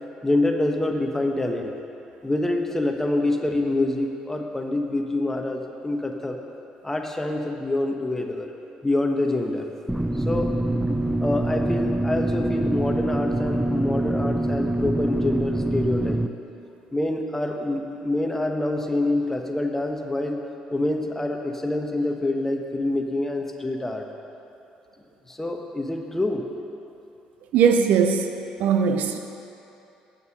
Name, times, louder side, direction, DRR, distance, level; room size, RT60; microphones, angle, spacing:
voice 1, 0.2-1.7 2.2-6.4 6.8-8.5 8.8-9.6 10.2-10.5 11.2-16.2 16.9-20.4 20.7-24.0 25.3-26.4, left 2 dB, 15° left, 3 dB, 1.1 m, -26 dB
sound 1, 9.9-16.3, right 1 dB, 5° right, 0.4 m, -25 dB
voice 2, 27.5-28.3 28.6-29.2, right 6 dB, 70° right, 6 dB, 0.5 m, -19 dB
8.4 x 6.9 x 6.5 m, 2.9 s
hypercardioid pair, 60°, 3 cm